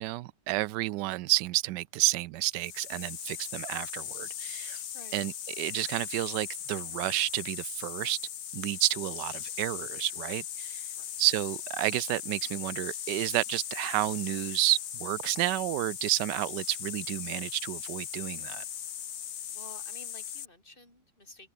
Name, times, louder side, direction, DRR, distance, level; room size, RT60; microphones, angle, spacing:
voice 1, 0.0-4.8 5.1-8.2 8.5-10.8 11.2-18.6, right 18 dB, 80° right, 1.2 m, -30 dB
sound 1, 2.5-20.5, left 9 dB, 60° left, 1.5 m, -39 dB
voice 2, 4.9-5.3 11.0-11.2 19.5-21.5, left 2 dB, 30° left, 7.1 m, -52 dB
omnidirectional pair, 1.9 m